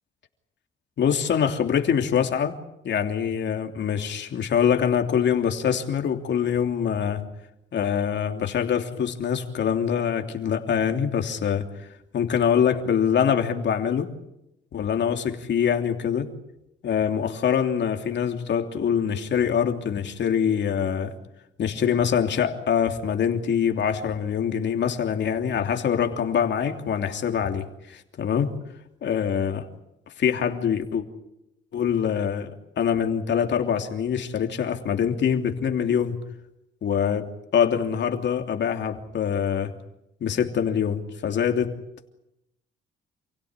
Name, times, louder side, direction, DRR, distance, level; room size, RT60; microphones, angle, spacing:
voice 1, 1.0-2.5 2.8-7.2 7.7-11.7 12.1-14.1 14.7-16.3 16.8-21.1 21.6-28.5 29.0-29.7 30.2-31.1 31.7-32.5 32.8-36.1 36.8-37.3 37.5-39.7 40.2-41.7, left 8 dB, 65° left, 3.1 m, -24 dB
28.5 x 17.0 x 9.8 m
cardioid pair, 90°, 20 cm